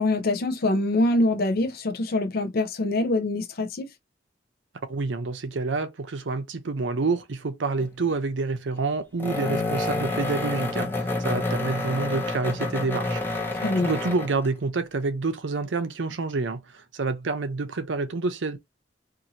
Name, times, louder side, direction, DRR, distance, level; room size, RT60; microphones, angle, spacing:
voice 1, 0.0-3.9 13.6-13.9, left 2 dB, 55° left, 0.5 m, -24 dB
voice 2, 4.9-13.2 13.8-18.6, right 3 dB, 80° right, 0.6 m, -28 dB
sound 1, 7.8-8.1 9.2-14.5, left 2 dB, 10° left, 0.8 m, -28 dB
2.7 x 2.5 x 2.8 m
head